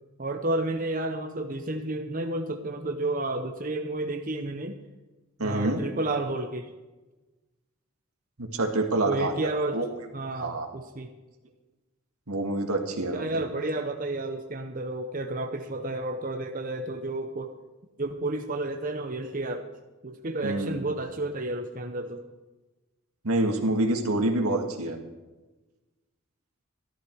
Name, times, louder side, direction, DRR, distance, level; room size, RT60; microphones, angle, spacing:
voice 1, 0.2-4.8 5.4-6.7 9.0-9.8 10.1-11.1 13.1-17.5 18.0-19.7 20.0-22.2, right 2 dB, 40° right, 5 dB, 0.8 m, -31 dB
voice 2, 5.4-5.8 8.4-9.9 10.4-10.7 12.3-13.4 20.4-20.9 23.2-25.0, right 2 dB, 85° right, 4 dB, 1.9 m, -27 dB
14.0 x 13.0 x 4.7 m, 1.2 s
head